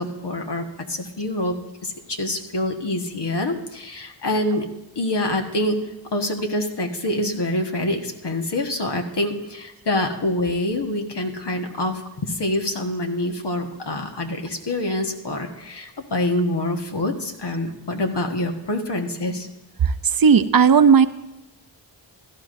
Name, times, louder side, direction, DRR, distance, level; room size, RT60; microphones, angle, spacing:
voice 1, 0.0-1.6 1.8-4.7 4.9-5.8 6.1-19.5, left 1 dB, 65° left, 3 dB, 1.5 m, -26 dB
voice 2, 19.8-21.1, right 6 dB, 55° right, 13 dB, 0.6 m, -15 dB
16.5 x 12.5 x 2.6 m, 0.97 s
cardioid pair, 45°, 44 cm